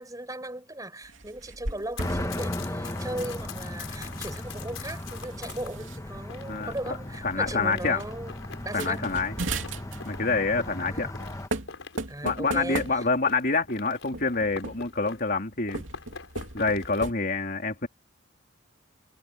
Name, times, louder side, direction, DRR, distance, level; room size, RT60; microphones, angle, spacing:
voice 1, 0.0-8.4 8.6-9.1 10.8-11.1 12.1-13.0, right 1 dB, 15° right, 7.5 m, -37 dB
sound 1, 1.0-2.3 2.6-2.9 4.0-6.0 6.7-6.8 7.1-7.4 8.0-8.1 8.6-10.2 11.1-11.2 11.5-13.4 14.1-15.0 15.7-17.1, right 2 dB, 70° right, 3.0 m, -37 dB
Run, 1.8-5.7 6.3-15.4 15.7-17.0, left 5 dB, 75° left, 5.1 m, -45 dB
sound 2, 2.0-11.5, left 1 dB, 15° left, 1.3 m, -36 dB
voice 2, 7.2-8.0 8.7-9.3 10.1-11.1 12.2-15.8 16.5-17.9, left 3 dB, 45° left, 3.0 m, -27 dB
head